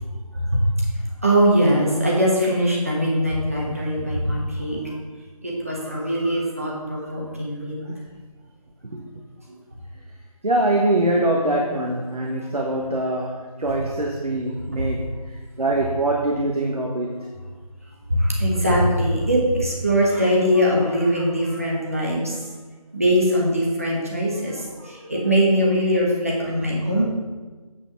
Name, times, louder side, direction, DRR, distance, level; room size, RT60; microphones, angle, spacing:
voice 1, 0.3-0.7 1.2-4.9 5.4-7.7 8.0-8.1 18.1-22.5 22.9-27.0, equal, 25° right, -3 dB, 1.1 m, -21 dB
voice 2, 10.4-15.1 15.6-17.2, right 1 dB, 80° right, 0 dB, 1.3 m, -23 dB
8.3 x 6.2 x 5.6 m, 1.3 s
figure-of-eight pair, 175°, 19 cm